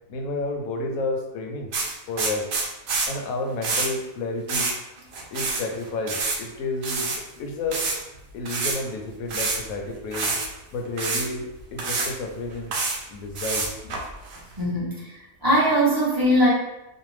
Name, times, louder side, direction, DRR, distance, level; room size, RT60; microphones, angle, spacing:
voice 1, 0.1-1.7 2.1-2.5 3.1-4.7 5.3-7.9 8.3-10.4 10.7-12.7 13.1-14.0, left 2 dB, 80° left, 2 dB, 1.0 m, -31 dB
sound 1, 1.7-3.1 3.6-3.9 4.5-4.7 5.0-5.6 5.9-6.4 6.8-7.2 7.7-8.0 8.4-8.8 9.3-9.7 10.1-10.5 11.0-11.3 11.8-12.1 12.5-13.0 13.3-14.4, right 3 dB, 65° right, 0.7 m, -27 dB
voice 2, 14.6-16.5, equal, 25° right, -6 dB, 0.5 m, -21 dB
2.6 x 2.1 x 3.1 m, 0.94 s
omnidirectional pair, 1.5 m